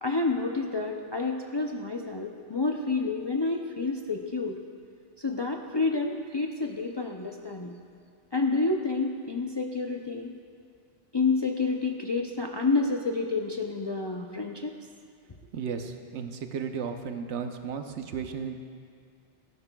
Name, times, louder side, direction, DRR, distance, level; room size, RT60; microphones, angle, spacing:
voice 1, 0.0-4.6 5.2-7.8 8.3-10.4 11.1-14.7, left 3 dB, 35° left, 1 dB, 0.4 m, -29 dB
voice 2, 15.5-18.6, right 6 dB, 75° right, 6 dB, 1.0 m, -34 dB
18.0 x 14.0 x 2.3 m, 2.3 s
omnidirectional pair, 1.2 m